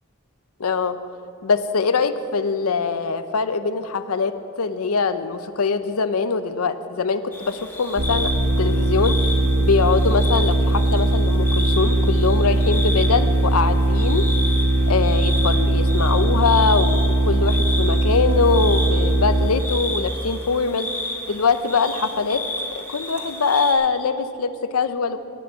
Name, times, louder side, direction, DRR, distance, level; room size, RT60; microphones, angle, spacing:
voice 1, 0.6-1.0 1.4-8.3 8.6-9.3 9.6-14.3 14.9-20.9 21.3-22.4 22.7-25.2, left 4 dB, 85° left, 11 dB, 0.7 m, -22 dB
sound 1, 7.3-23.7, left 2 dB, 10° left, 1.6 m, -32 dB
sound 2, 8.0-19.5, right 1 dB, 60° right, 1.5 m, -19 dB
17.0 x 6.2 x 8.4 m, 2.7 s
head